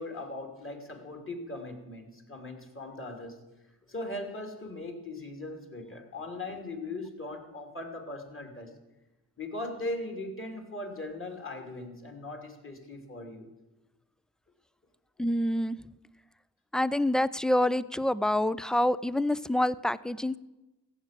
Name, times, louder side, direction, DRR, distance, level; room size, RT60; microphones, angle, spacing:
voice 1, 0.0-3.4 3.9-8.7 9.4-13.5, left 2 dB, 30° left, 3 dB, 3.0 m, -39 dB
voice 2, 15.2-15.8 16.7-20.4, left 1 dB, ahead, 18 dB, 0.4 m, -27 dB
15.5 x 7.2 x 7.6 m, 1.1 s
supercardioid pair, 55°, 41 cm